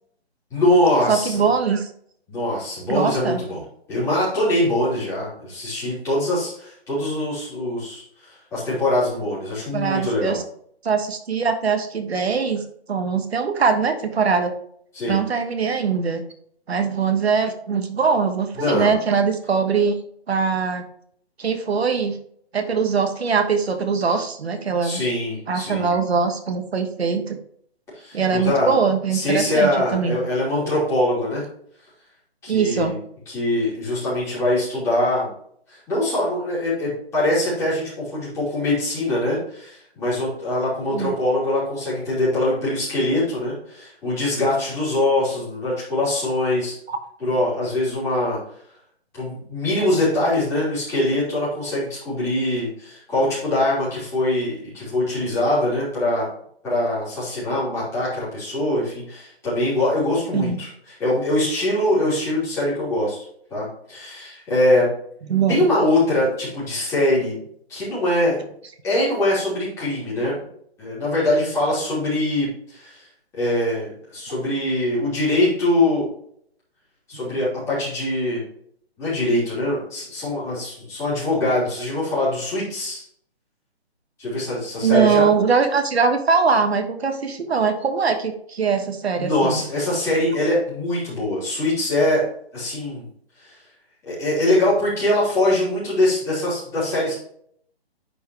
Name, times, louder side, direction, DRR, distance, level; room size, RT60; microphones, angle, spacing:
voice 1, 0.5-1.4 2.3-3.6 3.9-10.4 14.9-15.2 18.6-18.9 24.8-25.9 27.9-28.7 29.1-31.4 32.4-32.9 33.3-35.3 35.7-46.8 47.2-48.4 49.1-56.2 56.6-60.7 61.0-63.2 63.5-64.9 65.5-67.3 67.7-68.3 68.8-70.3 70.8-73.1 73.3-76.1 77.1-78.4 79.0-83.0 84.2-85.3 89.2-92.2 92.5-93.0 93.4-93.5 94.0-97.1, left 1 dB, 10° left, -10 dB, 3.4 m, -23 dB
voice 2, 1.1-1.9 2.9-3.4 9.7-10.4 10.8-12.6 12.9-14.5 15.1-16.2 16.7-20.0 20.3-20.8 21.4-22.2 22.5-25.0 25.5-27.4 28.1-30.2 32.5-32.9 40.9-41.1 60.3-60.6 65.3-65.6 84.8-89.6, right 5 dB, 70° right, 6 dB, 1.3 m, -21 dB
10.0 x 4.7 x 3.2 m, 0.65 s
hypercardioid pair, 165°, 32 cm